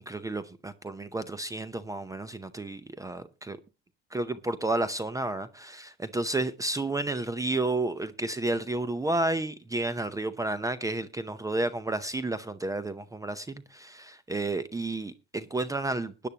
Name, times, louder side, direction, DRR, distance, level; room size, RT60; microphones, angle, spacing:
voice 1, 0.0-3.6 4.1-16.3, right 2 dB, 10° right, 0.7 m, -31 dB
20.0 x 10.0 x 2.9 m
supercardioid pair, 105°, 29 cm